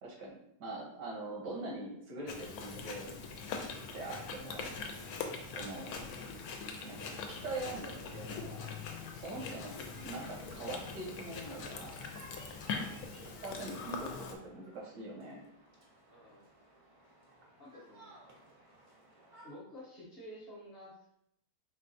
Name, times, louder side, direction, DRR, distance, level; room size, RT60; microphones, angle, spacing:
voice 1, 0.0-3.1 3.9-4.7 5.5-6.0 6.8-8.7 9.1-12.0 13.2-15.4, right 2 dB, 85° right, -1 dB, 1.7 m, -43 dB
Chewing mastication, 2.3-14.3, left 5 dB, 70° left, 1.0 m, -42 dB
sound 1, 9.4-19.5, right 1 dB, 50° right, 0.4 m, -59 dB
voice 2, 12.8-13.2 16.1-16.5 17.6-18.1 19.4-21.1, equal, 45° left, -6 dB, 1.0 m, -52 dB
4.5 x 3.2 x 2.7 m, 0.76 s
omnidirectional pair, 1.7 m